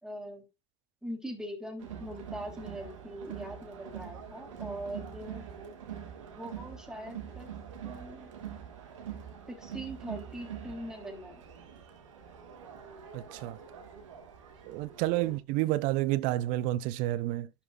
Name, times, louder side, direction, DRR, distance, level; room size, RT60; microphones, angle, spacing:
voice 1, 0.0-0.5 1.0-5.5 6.3-7.5 7.8-8.3 9.5-11.4, equal, 5° right, 3.3 m, -42 dB
Crowd, 1.8-15.4, right 8 dB, 75° right, 1.9 m, -44 dB
voice 2, 13.1-13.6 14.7-17.5, right 16 dB, 55° right, 0.7 m, -30 dB
11.5 x 5.8 x 2.5 m
figure-of-eight pair, 70°, 16 cm